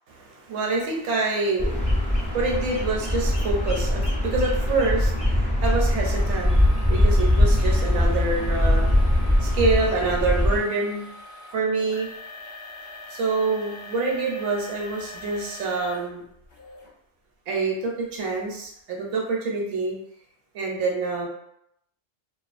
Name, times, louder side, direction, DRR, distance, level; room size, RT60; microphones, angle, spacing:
voice 1, 0.2-11.0 11.5-12.1 13.1-16.2 17.5-19.9 20.5-21.3, right 3 dB, 80° right, -1 dB, 0.9 m, -26 dB
Bird vocalization bird call bird song, 1.6-10.6, left 1 dB, 10° left, 0.3 m, -22 dB
sound 1, 3.9-4.0 4.7-4.9 6.1-16.9 17.5-17.6 18.2-18.3, left 1 dB, 50° left, 0.8 m, -43 dB
2.3 x 2.2 x 2.4 m, 0.75 s
omnidirectional pair, 1.2 m